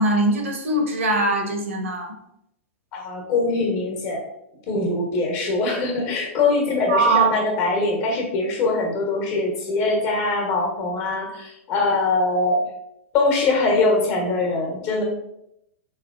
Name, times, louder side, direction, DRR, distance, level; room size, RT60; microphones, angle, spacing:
voice 1, 0.0-2.1 6.9-7.3, right 2 dB, 70° right, 3 dB, 0.8 m, -21 dB
voice 2, 2.9-4.2 4.7-12.6 13.1-15.0, left 3 dB, 40° left, 0 dB, 1.1 m, -22 dB
3.3 x 3.1 x 2.5 m, 0.81 s
hypercardioid pair, 110°, 7 cm